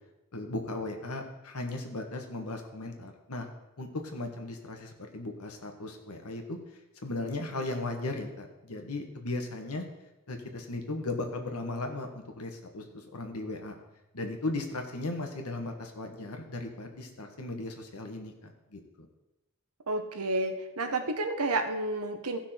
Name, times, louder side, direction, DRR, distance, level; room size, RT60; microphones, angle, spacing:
voice 1, 0.3-3.5 3.8-6.6 7.0-9.8 10.3-13.7 14.1-18.8, left 2 dB, 75° left, 4 dB, 1.5 m, -36 dB
voice 2, 19.9-22.4, right 2 dB, 85° right, 6 dB, 1.1 m, -30 dB
15.5 x 6.0 x 4.4 m, 0.97 s
head